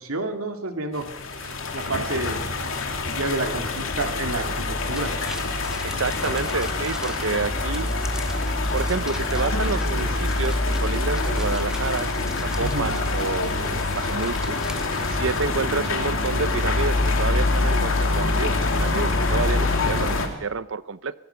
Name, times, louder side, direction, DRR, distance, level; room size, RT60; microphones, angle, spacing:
voice 1, 0.0-2.4 3.1-5.1 12.6-13.0, right 2 dB, 85° right, 5 dB, 2.4 m, -30 dB
sound 1, 0.9-20.3, left 2 dB, 65° left, 2.9 m, -25 dB
voice 2, 1.9-2.4 5.8-7.9 8.7-14.6 15.1-21.1, right 4 dB, 60° right, 16 dB, 0.7 m, -29 dB
sound 2, 4.8-15.4, equal, 5° right, 1.9 m, -41 dB
25.0 x 18.5 x 5.8 m, 0.96 s
head